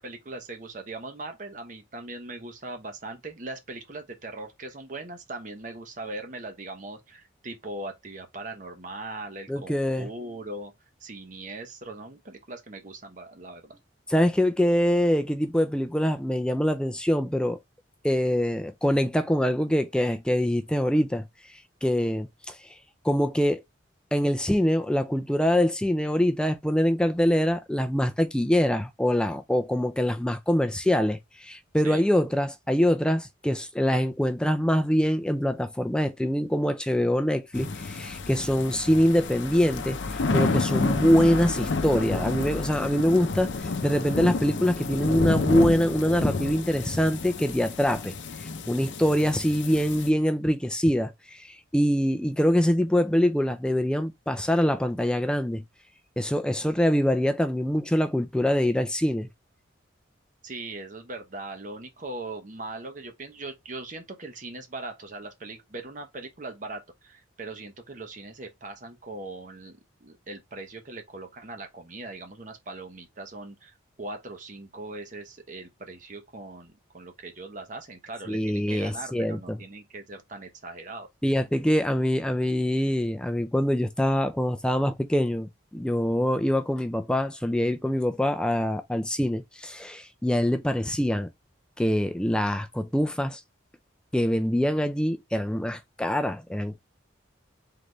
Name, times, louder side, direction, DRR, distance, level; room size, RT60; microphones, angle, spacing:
voice 1, 0.0-10.7 11.0-13.8 31.8-32.1 60.4-81.1, right 2 dB, 40° right, 0.8 m, -40 dB
voice 2, 9.5-10.1 14.1-17.6 18.0-21.2 21.8-22.6 23.0-23.6 24.1-48.1 48.7-55.6 56.2-59.3 78.3-79.6 81.2-91.3 91.8-93.4 94.1-96.8, equal, 5° left, 0.3 m, -24 dB
sound 1, 37.5-50.1, left 3 dB, 65° left, 0.6 m, -30 dB
3.9 x 3.3 x 3.1 m
head